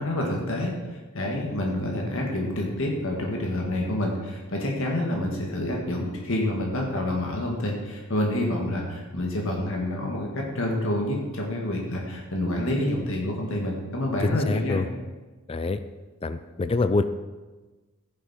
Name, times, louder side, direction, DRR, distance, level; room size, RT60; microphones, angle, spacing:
voice 1, 0.0-14.8, left 1 dB, 60° left, 0 dB, 1.8 m, -28 dB
voice 2, 14.2-14.9 15.5-15.8 16.2-17.0, left 3 dB, 25° left, 11 dB, 0.4 m, -25 dB
15.5 x 7.4 x 4.3 m, 1.3 s
head